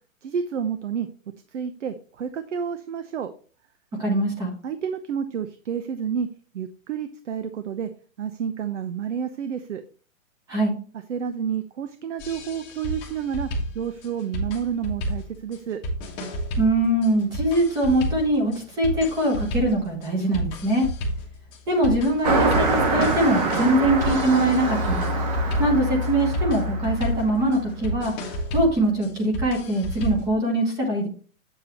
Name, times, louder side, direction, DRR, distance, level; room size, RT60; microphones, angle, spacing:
voice 1, 0.2-1.1 1.5-3.3 4.6-6.3 6.5-7.9 8.2-9.8 11.1-13.5 13.7-15.8, right 7 dB, 60° right, 10 dB, 0.9 m, -29 dB
voice 2, 4.0-4.5 10.5-10.8 16.6-20.9 21.7-25.0 25.6-31.1, right 1 dB, 10° right, 2 dB, 1.0 m, -22 dB
sound 1, 12.2-30.3, right 1 dB, 10° left, 1.1 m, -32 dB
Car passing by, 22.2-28.1, right 2 dB, 30° right, 1.3 m, -25 dB
8.1 x 7.5 x 3.0 m, 0.40 s
hypercardioid pair, 175°, 41 cm